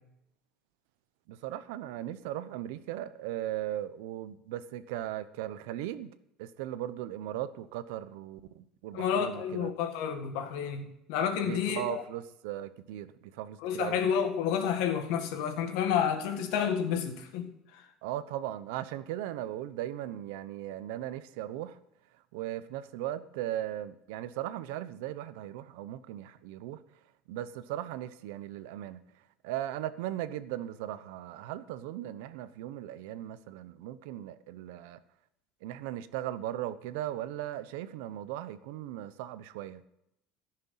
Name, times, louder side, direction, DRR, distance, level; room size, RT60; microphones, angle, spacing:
voice 1, 1.3-6.1 6.4-9.7 11.4-14.0 18.0-21.8 22.3-26.8 27.3-29.0 29.4-35.0 35.6-39.8, right 13 dB, 80° right, 13 dB, 0.8 m, -38 dB
voice 2, 8.9-12.0 13.6-17.5 17.7-17.8, left 8 dB, 65° left, 6 dB, 1.8 m, -30 dB
15.5 x 6.7 x 5.6 m, 0.81 s
cardioid pair, 180°, 0 cm